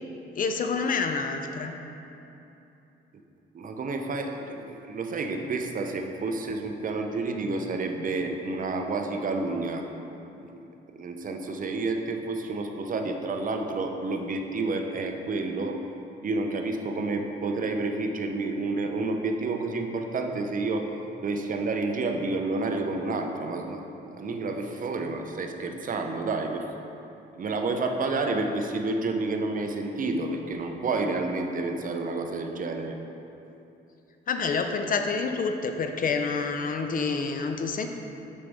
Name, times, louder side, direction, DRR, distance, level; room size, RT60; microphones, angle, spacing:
voice 1, 0.3-1.8 34.3-37.9, left 4 dB, 45° left, 5 dB, 0.5 m, -28 dB
voice 2, 3.5-9.9 10.3-10.7 10.9-15.8 16.2-20.9 21.2-26.7 27.3-33.0, right 3 dB, 45° right, 4 dB, 0.6 m, -30 dB
6.6 x 5.2 x 3.5 m, 2.9 s
cardioid pair, 90°, 20 cm